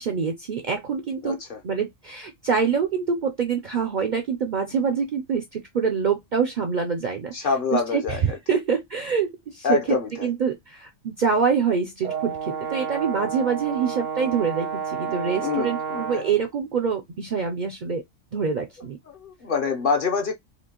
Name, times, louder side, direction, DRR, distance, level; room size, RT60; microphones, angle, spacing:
voice 1, 0.0-1.4 1.6-7.3 7.7-18.0 18.3-19.0, right 6 dB, 55° right, 0.5 m, -25 dB
voice 2, 1.2-1.6 7.3-8.2 9.6-10.3 15.4-16.2 19.1-20.3, left 5 dB, 50° left, 0.8 m, -26 dB
Brass instrument, 12.0-16.4, right 7 dB, 85° right, 1.3 m, -30 dB
4.3 x 2.9 x 2.9 m
omnidirectional pair, 1.3 m